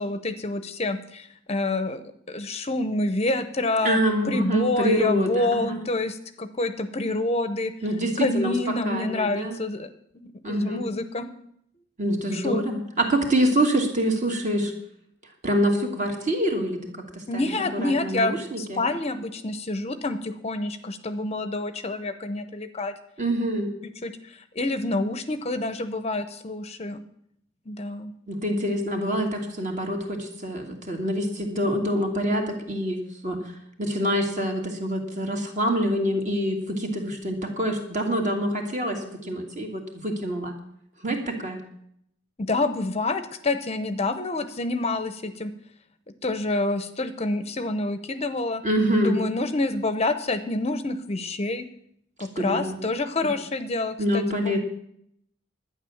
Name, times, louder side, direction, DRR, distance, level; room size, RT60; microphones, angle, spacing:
voice 1, 0.0-2.0 2.3-4.0 4.2-7.7 8.2-9.9 10.2-11.3 12.3-12.7 17.3-22.9 23.8-27.0 27.7-28.1 42.4-45.5 46.2-48.6 49.0-51.7 52.2-54.6, left 2 dB, 35° left, 11 dB, 0.7 m, -27 dB
voice 2, 3.8-5.8 7.8-8.5 8.8-9.6 10.4-10.9 12.0-14.7 15.4-17.5 17.8-18.8 23.2-23.7 28.3-33.4 33.8-40.5 41.0-41.6 48.6-49.2 52.4-52.8 54.0-54.6, equal, 40° right, 3 dB, 2.4 m, -26 dB
11.5 x 9.4 x 7.1 m, 0.70 s
head